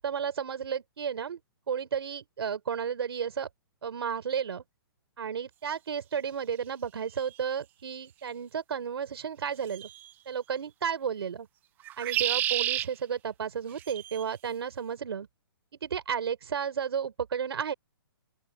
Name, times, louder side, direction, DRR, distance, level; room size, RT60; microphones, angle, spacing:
voice 1, 0.0-1.4 1.7-3.5 3.8-4.6 5.2-9.9 10.3-11.5 12.0-15.3 15.8-17.7, right 7 dB, 75° right, 4.8 m, -33 dB
sound 1, 7.2-7.3 9.7-10.1 11.8-12.9 13.8-14.2, right 13 dB, 15° right, 0.7 m, -30 dB
open air
hypercardioid pair, 165°, 13 cm